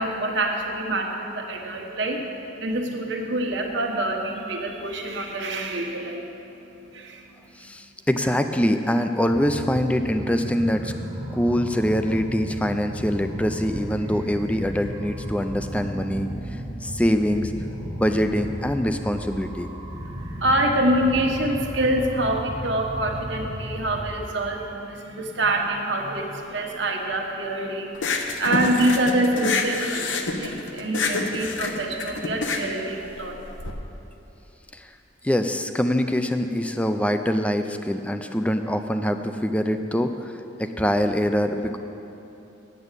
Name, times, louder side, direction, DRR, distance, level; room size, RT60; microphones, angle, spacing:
voice 1, 0.0-7.6 19.9-33.3, right 1 dB, 70° right, 1 dB, 1.3 m, -26 dB
voice 2, 7.6-10.9 11.3-17.5 18.0-19.7 34.7-34.9 35.2-41.8, equal, 5° left, 8 dB, 0.4 m, -24 dB
sound 1, 9.2-24.2, equal, 25° right, 0.9 m, -34 dB
sound 2, 27.9-33.7, left 3 dB, 80° left, 0.9 m, -27 dB
8.9 x 7.7 x 8.2 m, 2.9 s
head